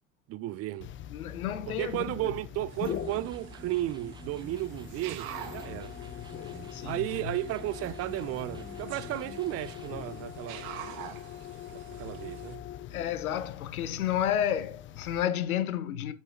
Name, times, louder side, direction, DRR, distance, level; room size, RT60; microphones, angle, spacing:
voice 1, 0.3-0.9 1.7-5.9 6.8-10.7 11.9-12.6, right 15 dB, 35° right, 0.4 m, -34 dB
sound 1, 0.8-15.2, left 11 dB, 30° left, 0.5 m, -43 dB
voice 2, 1.1-2.3 6.7-7.0 12.9-16.1, left 10 dB, 85° left, 0.8 m, -31 dB
sound 2, 2.7-12.6, right 10 dB, 60° right, 1.2 m, -47 dB
Electric guitar, 2.8-10.1, right 3 dB, 10° right, 0.8 m, -49 dB
7.6 x 5.7 x 2.5 m
hypercardioid pair, 75°, 42 cm